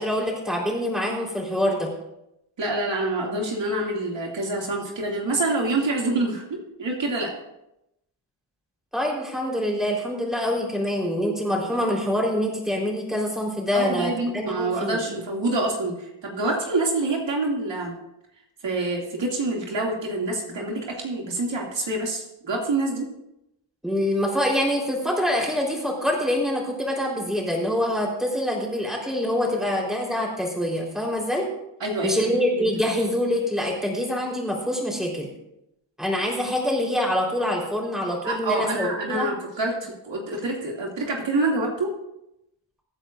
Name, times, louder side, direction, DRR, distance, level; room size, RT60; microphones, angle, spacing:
voice 1, 0.0-1.9 8.9-15.0 23.8-31.5 32.0-35.3 36.0-39.3, left 1 dB, ahead, -2 dB, 3.9 m, -25 dB
voice 2, 2.6-7.3 13.7-16.0 16.2-17.9 18.6-23.1 31.8-32.3 38.2-41.9, right 2 dB, 70° right, -1 dB, 2.6 m, -26 dB
23.5 x 9.1 x 2.6 m, 0.86 s
wide cardioid pair, 100°, 46 cm